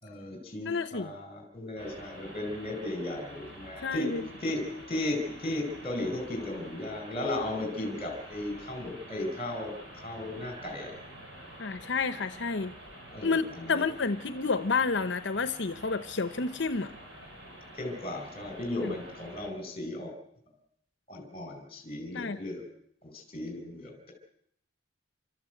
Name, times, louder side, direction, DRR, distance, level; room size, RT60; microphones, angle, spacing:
voice 1, 0.0-4.1 4.4-4.6 4.9-10.9 13.1-13.9 17.7-20.1 21.1-22.6 23.0-24.1, left 1 dB, 30° left, 3 dB, 4.5 m, -35 dB
voice 2, 0.7-1.1 3.8-4.2 11.6-12.7 13.2-16.9 18.8-18.9 22.1-22.4, left 4 dB, 65° left, 11 dB, 0.8 m, -30 dB
sound 1, 1.8-19.5, right 1 dB, 70° right, 7.4 m, -48 dB
29.0 x 13.0 x 7.9 m, 0.70 s
head